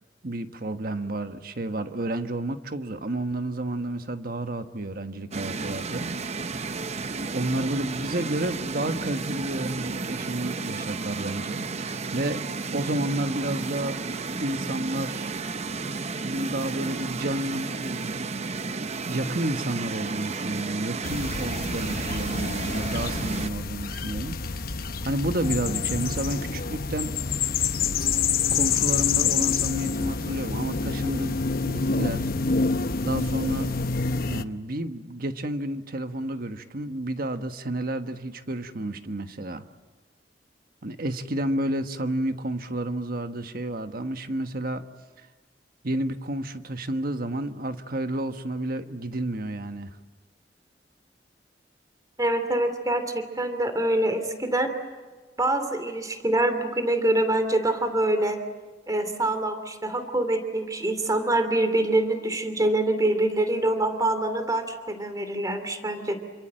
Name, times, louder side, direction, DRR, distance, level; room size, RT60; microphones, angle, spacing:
voice 1, 0.2-6.1 6.5-6.6 7.3-12.4 12.7-14.0 14.4-15.3 16.2-18.2 19.1-24.6 25.0-27.1 28.5-31.4 31.6-32.3 33.0-33.7 34.3-39.7 40.8-44.8 45.2-45.3 45.8-50.0, right 1 dB, 55° right, 8 dB, 1.4 m, -30 dB
sound 1, 5.3-23.5, right 4 dB, 40° right, 0.7 m, -32 dB
sound 2, 21.0-34.4, left 5 dB, 55° left, 0.9 m, -27 dB
voice 2, 52.2-54.7 55.4-58.4 58.9-66.2, right 1 dB, 20° right, 8 dB, 2.9 m, -25 dB
28.5 x 25.5 x 7.8 m, 1.3 s
head